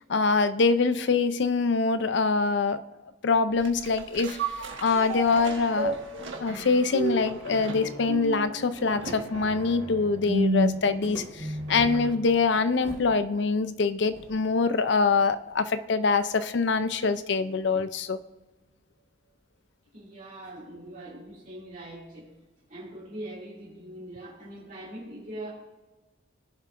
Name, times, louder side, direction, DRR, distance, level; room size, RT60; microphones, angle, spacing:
voice 1, 0.1-2.8 3.2-4.4 4.8-5.9 6.4-18.2, left 4 dB, 65° left, 13 dB, 0.5 m, -24 dB
sound 1, 3.6-12.2 12.6-12.7, right 1 dB, 75° right, 1.5 m, -32 dB
sound 2, 11.0-13.2 13.4-13.5 14.1-17.2, equal, 15° left, 2.9 m, -49 dB
voice 2, 19.9-22.3 22.7-25.5, right 1 dB, 40° right, -7 dB, 2.5 m, -42 dB
17.5 x 7.3 x 2.5 m, 1.1 s
head